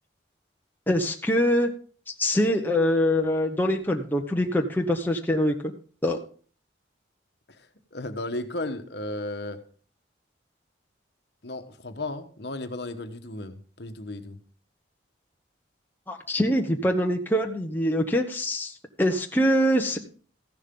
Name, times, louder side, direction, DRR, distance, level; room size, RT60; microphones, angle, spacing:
voice 1, 0.9-1.7 2.1-5.7 6.0-6.2 16.1-20.0, equal, 10° left, 2 dB, 1.0 m, -24 dB
voice 2, 7.5-9.6 11.4-14.4, left 2 dB, 60° left, 8 dB, 1.3 m, -35 dB
14.5 x 11.0 x 3.8 m, 0.42 s
head